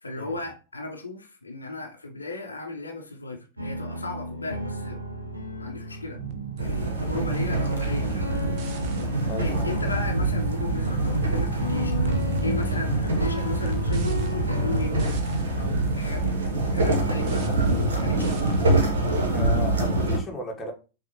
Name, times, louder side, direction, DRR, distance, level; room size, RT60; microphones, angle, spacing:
voice 1, 0.0-5.0 5.6-6.2 6.6-8.6 9.2-15.2 15.6-16.3 16.7-18.7, left 3 dB, 80° left, 0.7 m, -36 dB
sound 1, 3.6-15.1, left 1 dB, 85° right, 0.6 m, -34 dB
sound 2, 6.2-19.2, right 6 dB, 45° right, 0.7 m, -38 dB
sound 3, 6.6-20.2, right 2 dB, 65° right, 1.1 m, -25 dB
voice 2, 9.2-9.7 19.3-20.7, left 1 dB, 15° left, 1.1 m, -35 dB
5.9 x 2.4 x 2.9 m
figure-of-eight pair, 90°, 0 cm